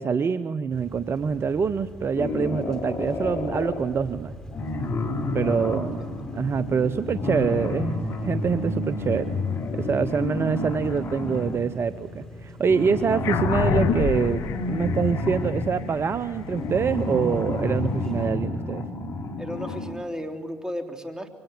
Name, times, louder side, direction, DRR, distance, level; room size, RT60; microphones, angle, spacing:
voice 1, 0.0-4.3 5.3-6.0 6.3-9.4 9.7-14.4 14.7-18.8, right 6 dB, 45° right, 13 dB, 0.8 m, -25 dB
sound 1, 0.7-18.3, equal, 10° left, 4.2 m, -42 dB
sound 2, 2.2-3.9 4.5-11.6 12.6-20.0, left 2 dB, 45° left, 3.9 m, -30 dB
voice 2, 5.2-6.1 19.4-21.3, equal, 10° right, 5 dB, 3.3 m, -35 dB
sound 3, 13.2-18.0, left 6 dB, 70° left, 1.6 m, -29 dB
24.0 x 18.5 x 9.3 m, 1.5 s
hypercardioid pair, 60°, 6 cm